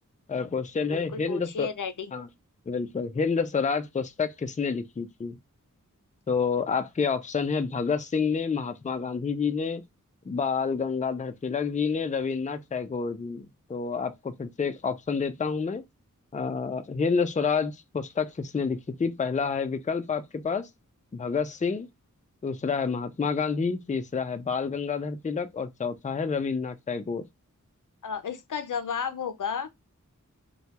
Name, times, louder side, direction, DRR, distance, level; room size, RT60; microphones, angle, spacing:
voice 1, 0.3-1.7 2.1-2.3 2.7-5.4 6.3-9.8 10.3-15.8 16.3-20.7 21.1-21.9 22.4-27.2, left 5 dB, 25° left, 0.4 m, -29 dB
voice 2, 0.9-2.1 28.0-29.7, left 6 dB, 80° left, 0.5 m, -33 dB
3.0 x 2.2 x 2.8 m
wide cardioid pair, 60°, 31 cm